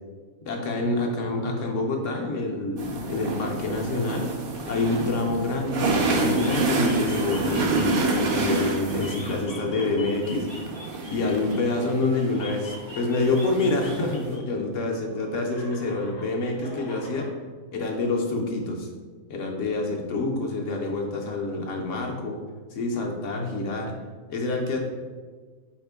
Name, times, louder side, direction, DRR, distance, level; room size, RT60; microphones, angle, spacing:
voice 1, 0.4-4.3 4.7-10.5 11.1-17.3 17.7-18.9 19.3-22.4 22.7-23.9 24.3-24.8, left 2 dB, 65° left, 1 dB, 0.8 m, -27 dB
sound 1, 2.8-14.3, right 3 dB, 60° right, 0.6 m, -28 dB
sound 2, 3.6-6.0 6.3-11.8 12.3-14.4 14.7-17.3, left 1 dB, 30° left, 0.5 m, -43 dB
4.2 x 2.9 x 3.3 m, 1.5 s
omnidirectional pair, 1.5 m